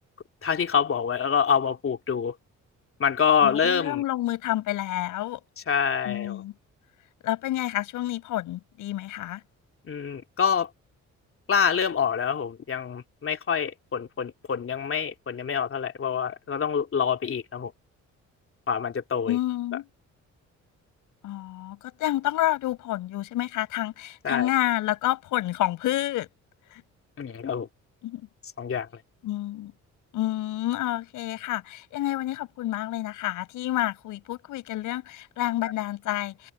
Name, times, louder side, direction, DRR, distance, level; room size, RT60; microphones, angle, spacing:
voice 1, 0.4-2.3 3.0-4.0 5.7-6.4 9.9-10.7 11.5-17.7 18.7-19.4 24.2-24.5 27.2-27.7 28.6-28.9, left 7 dB, 45° left, 2.9 m, -26 dB
voice 2, 3.4-5.4 6.0-6.5 7.2-9.4 19.3-19.9 21.2-26.3 26.7-26.8 28.0-28.3 29.2-29.7 30.1-36.5, left 15 dB, 90° left, 6.3 m, -29 dB
cardioid pair, 90°, 30 cm